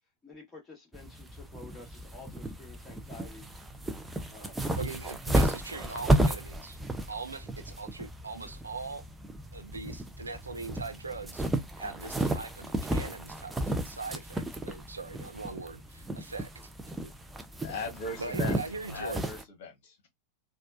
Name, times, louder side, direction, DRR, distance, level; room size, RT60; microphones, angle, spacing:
voice 1, 0.2-3.4 4.3-4.7, left 3 dB, 15° left, 2.1 m, -50 dB
sound 1, 0.9-19.4, right 1 dB, 10° right, 0.5 m, -33 dB
voice 2, 4.8-6.8 7.1-9.0 9.5-11.5 11.8-16.5 18.2-19.2, right 4 dB, 80° right, 0.5 m, -40 dB
voice 3, 17.6-18.6 18.9-20.1, left 3 dB, 50° left, 1.3 m, -38 dB
4.1 x 2.4 x 2.4 m
figure-of-eight pair, 90°, 0 cm